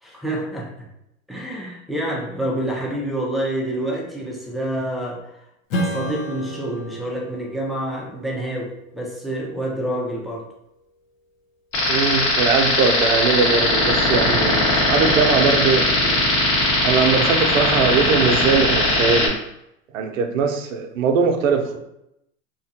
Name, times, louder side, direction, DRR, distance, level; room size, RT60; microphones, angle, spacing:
voice 1, 0.0-0.9 1.3-5.3 5.7-10.5, right 1 dB, ahead, -3 dB, 0.5 m, -27 dB
Strum, 5.7-10.6, equal, 75° left, 0.8 m, -33 dB
sound 1, 11.7-19.3, left 2 dB, 45° left, 0.9 m, -19 dB
voice 2, 11.9-16.2 16.8-19.3 19.9-21.8, right 5 dB, 80° right, 6 dB, 0.6 m, -21 dB
2.9 x 2.2 x 2.7 m, 0.81 s
hypercardioid pair, 95°, 40 cm